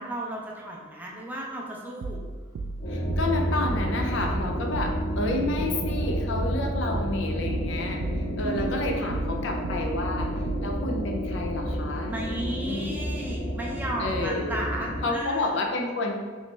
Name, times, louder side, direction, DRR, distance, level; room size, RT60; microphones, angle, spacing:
voice 1, 0.0-2.2 8.4-9.2 12.1-15.5, right 1 dB, 10° right, -3 dB, 0.4 m, -34 dB
sound 1, 2.0-10.7, right 3 dB, 90° right, 0.3 m, -35 dB
sound 2, 2.8-15.0, equal, 45° left, 0.9 m, -30 dB
voice 2, 2.9-10.3 10.6-12.1 12.6-13.0 14.0-14.6 15.0-16.2, left 2 dB, 65° left, 2 dB, 0.5 m, -30 dB
3.1 x 3.0 x 3.2 m, 1.4 s
head